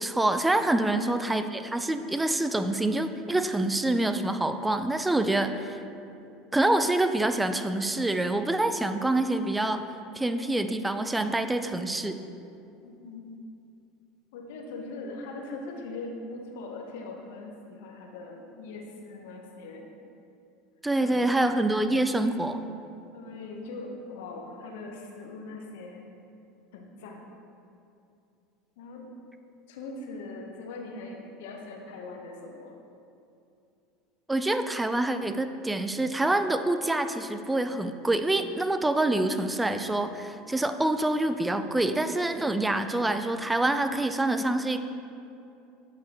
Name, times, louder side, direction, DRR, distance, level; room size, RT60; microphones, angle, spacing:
voice 1, 0.0-5.8 6.5-9.8 10.2-12.2 20.8-22.6 34.3-44.8, right 2 dB, 10° right, 9 dB, 0.4 m, -26 dB
voice 2, 12.8-13.3 14.3-19.9 20.9-21.8 23.1-26.0 26.7-27.3 28.8-29.0 29.7-32.7, left 3 dB, 70° left, 1 dB, 0.8 m, -41 dB
8.5 x 4.7 x 2.9 m, 2.6 s
hypercardioid pair, 80°, 0 cm